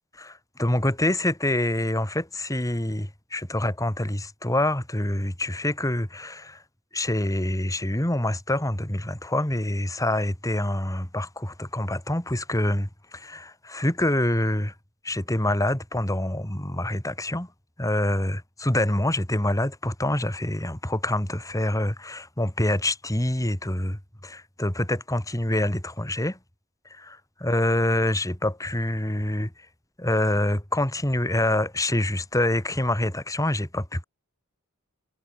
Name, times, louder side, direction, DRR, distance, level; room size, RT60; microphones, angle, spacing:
voice 1, 0.2-6.6 6.9-14.7 15.0-17.5 17.8-26.4 26.9-29.5 30.0-34.0, left 1 dB, 15° left, 2.5 m, -26 dB
head